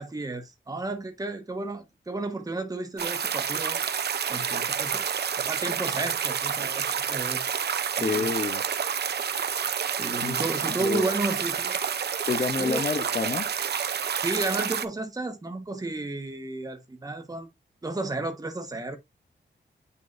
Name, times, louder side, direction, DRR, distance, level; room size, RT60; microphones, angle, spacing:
voice 1, 0.0-3.8 4.3-5.1 5.3-7.5 8.0-8.3 10.0-11.8 12.6-12.9 14.2-17.5 17.8-19.0, right 2 dB, 20° right, 1.3 m, -32 dB
sound 1, 3.0-14.9, right 7 dB, 60° right, 0.6 m, -29 dB
voice 2, 8.0-8.6 10.2-11.0 12.2-13.5, left 5 dB, 40° left, 0.9 m, -29 dB
9.8 x 3.9 x 2.6 m
wide cardioid pair, 150°, 19 cm